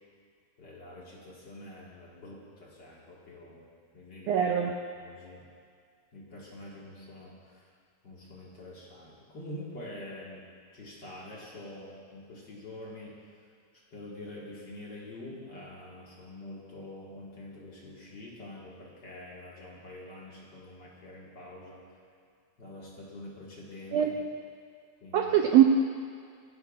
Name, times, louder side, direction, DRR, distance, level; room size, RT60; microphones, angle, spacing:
voice 1, 0.6-3.6 3.9-4.3 5.0-5.4 6.1-7.6 8.0-10.5 10.7-13.2 13.9-21.8 22.6-24.2 25.0-25.3, left 1 dB, 40° left, -5 dB, 2.0 m, -46 dB
voice 2, 4.3-4.7 23.9-24.3 25.1-25.7, right 10 dB, 85° right, 3 dB, 1.5 m, -22 dB
25.0 x 11.0 x 2.5 m, 2.2 s
omnidirectional pair, 3.6 m